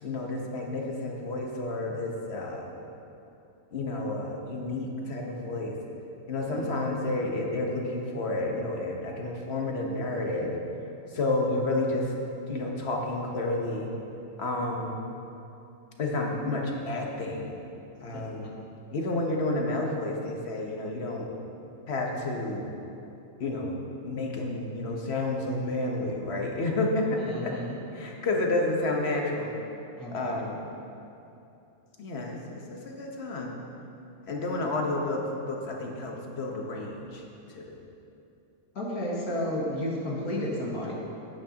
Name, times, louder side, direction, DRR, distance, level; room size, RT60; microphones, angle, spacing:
voice 1, 0.0-2.8 3.7-5.8 6.3-10.6 11.1-12.1 12.5-13.9 14.4-15.0 16.0-17.6 18.0-18.5 18.9-21.3 21.9-22.7 23.4-23.8 24.0-27.5 27.9-29.5 30.1-30.6 32.0-32.4 32.7-33.6 34.3-35.2 35.5-37.2 37.5-37.8, left 2 dB, 50° left, 0 dB, 1.3 m, -30 dB
voice 2, 18.1-18.6 27.2-27.8 30.0-30.3 38.7-40.9, left 1 dB, 85° left, -5 dB, 2.2 m, -32 dB
12.0 x 9.6 x 2.9 m, 2.8 s
omnidirectional pair, 1.5 m